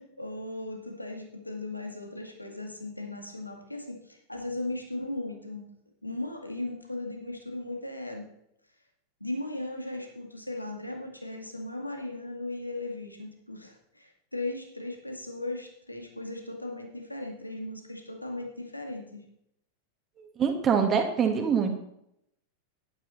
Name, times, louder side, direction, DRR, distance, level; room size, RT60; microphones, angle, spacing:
voice 1, 0.0-5.7 6.0-8.3 9.2-19.2, left 2 dB, 85° left, 2 dB, 2.0 m, -37 dB
voice 2, 20.2-21.7, right 6 dB, 25° right, 4 dB, 1.8 m, -25 dB
11.0 x 11.0 x 4.1 m, 0.76 s
figure-of-eight pair, 90°, 0 cm